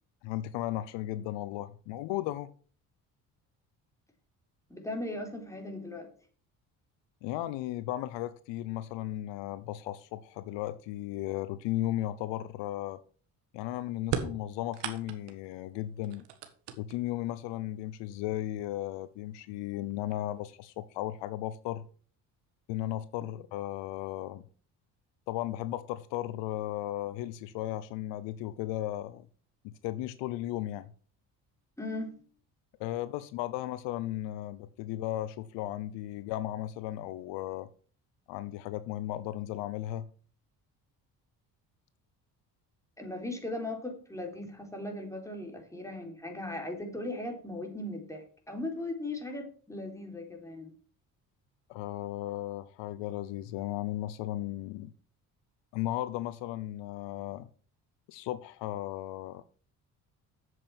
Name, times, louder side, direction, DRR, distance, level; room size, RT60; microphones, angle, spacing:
voice 1, 0.2-2.5 7.2-13.0 13.5-16.2 16.8-21.9 22.7-24.4 25.3-29.3 29.6-30.9 32.8-37.7 38.3-40.1 51.7-54.9 55.7-57.5 58.1-59.4, left 14 dB, 80° left, 0.8 m, -35 dB
voice 2, 4.7-6.1 31.8-32.2 43.0-50.7, left 1 dB, 5° left, 3.8 m, -38 dB
sound 1, 14.0-15.5 16.0-17.2 18.2-18.3 19.3-19.4 19.9-20.4, right 8 dB, 75° right, 1.6 m, -37 dB
7.8 x 7.6 x 6.0 m
supercardioid pair, 60°, 43 cm